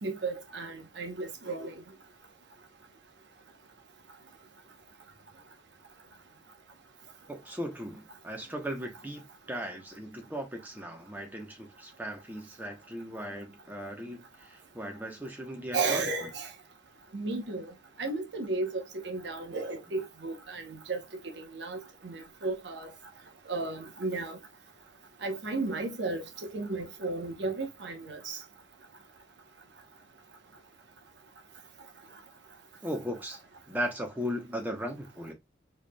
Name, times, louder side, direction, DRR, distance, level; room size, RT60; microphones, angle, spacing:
voice 1, 0.0-1.7 15.7-16.5 17.1-17.6 18.0-21.0 21.4-22.9 23.5-24.4 25.2-26.2 26.5-28.4, right 3 dB, 60° right, 0.9 m, -34 dB
voice 2, 7.3-16.3 32.8-33.4 33.7-35.3, equal, 10° right, 0.9 m, -37 dB
4.6 x 3.3 x 2.3 m
head